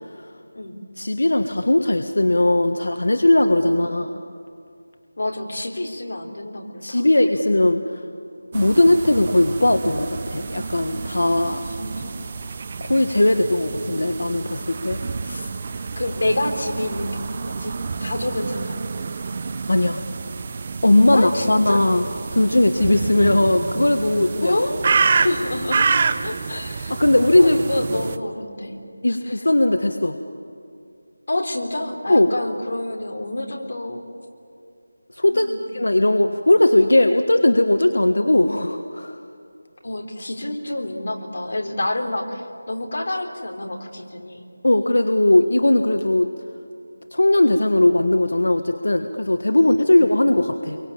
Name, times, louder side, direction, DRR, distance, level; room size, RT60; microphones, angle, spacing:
voice 1, 1.0-4.1 6.8-8.0 8.5-11.6 12.8-15.5 19.7-20.0 20.8-22.0 22.3-24.6 26.9-27.6 29.0-30.2 32.1-32.3 35.1-35.5 35.7-39.2 44.6-46.3 47.1-50.8, left 1 dB, 85° left, 7 dB, 1.5 m, -18 dB
voice 2, 5.2-7.3 11.4-12.3 16.0-19.1 21.1-21.8 23.2-23.3 24.4-24.8 25.1-26.9 27.4-28.8 29.1-29.4 31.3-34.0 35.2-36.2 39.8-44.4 49.6-50.0, left 1 dB, 55° left, 2 dB, 3.9 m, -28 dB
sound 1, 8.5-28.2, right 4 dB, 25° right, 0.8 m, -28 dB
29.0 x 23.5 x 8.7 m, 2.5 s
figure-of-eight pair, 175°, 0 cm